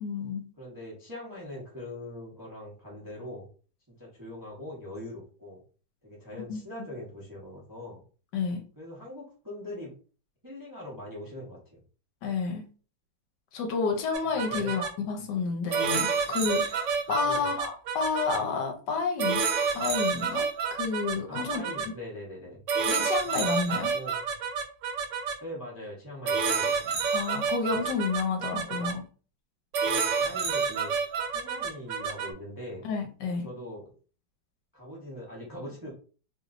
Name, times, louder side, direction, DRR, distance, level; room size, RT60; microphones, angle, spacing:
voice 1, 0.0-0.5 6.5-6.6 8.3-8.6 12.2-12.7 13.5-19.5 19.7-21.6 22.9-23.9 27.1-29.0 32.8-33.5, left 5 dB, 75° left, 5 dB, 1.3 m, -30 dB
voice 2, 0.6-3.5 4.0-5.6 6.0-8.0 8.8-9.9 10.4-11.8 14.5-14.7 17.2-17.5 21.3-22.6 23.9-24.2 25.4-26.8 29.9-30.9 31.3-32.8 33.4-33.9 34.7-35.9, left 1 dB, 20° right, -4 dB, 0.6 m, -41 dB
sound 1, 14.1-14.9 15.7-18.4 19.2-21.9 22.7-25.3 26.3-28.9 29.7-32.3, right 5 dB, 80° right, 0.6 m, -29 dB
3.1 x 2.9 x 2.5 m, 0.38 s
omnidirectional pair, 2.0 m